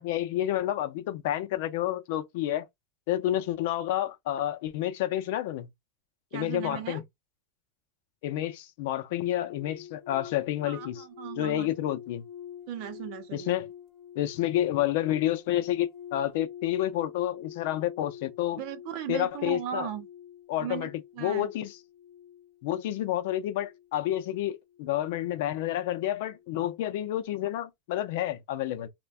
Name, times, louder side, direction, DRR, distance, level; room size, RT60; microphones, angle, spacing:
voice 1, 0.0-2.6 3.1-5.7 6.3-7.0 8.2-11.0 11.4-12.2 13.3-13.7 14.2-18.6 19.1-19.9 20.5-20.9 21.2-21.7 22.6-28.9, left 13 dB, 65° left, 0.5 m, -29 dB
voice 2, 6.3-7.0 10.6-11.7 12.7-13.6 18.6-20.1 20.6-21.5, right 10 dB, 50° right, 0.6 m, -37 dB
sound 1, 9.2-26.6 26.8-27.2, left 9 dB, 20° left, 1.3 m, -47 dB
2.5 x 2.2 x 3.3 m
supercardioid pair, 170°, 0 cm